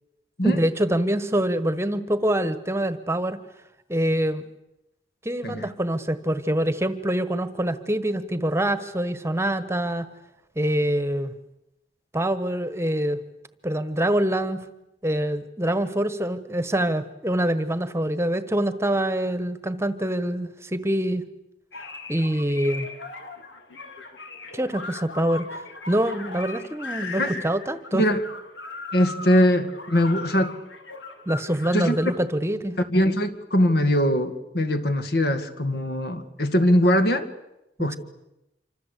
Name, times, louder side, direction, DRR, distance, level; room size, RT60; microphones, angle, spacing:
voice 1, 0.4-3.4 3.9-4.5 5.2-10.1 10.6-11.3 12.1-13.2 13.6-14.6 15.0-21.2 22.1-22.9 24.5-28.1 31.3-32.7, right 1 dB, 15° right, 12 dB, 1.3 m, -25 dB
sound 1, 21.7-32.2, left 3 dB, 85° left, 3.7 m, -38 dB
voice 2, 28.9-30.5 31.7-32.0 32.9-37.3 37.8-38.0, equal, 60° left, 8 dB, 2.3 m, -21 dB
27.0 x 25.5 x 8.4 m, 0.89 s
head